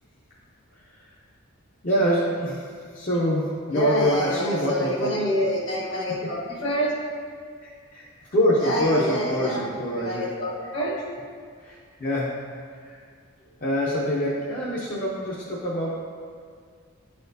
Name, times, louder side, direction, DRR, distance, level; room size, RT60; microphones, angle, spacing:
voice 1, 0.7-1.1 1.8-5.3 7.6-8.0 8.3-10.3 10.6-10.7 11.6-12.5 12.8-13.0 13.6-16.0, equal, 40° left, -6 dB, 0.7 m, -25 dB
voice 2, 3.7-6.9 8.6-9.7 9.9-11.0, equal, 60° left, -5 dB, 1.4 m, -27 dB
10.0 x 4.3 x 2.7 m, 2.1 s
head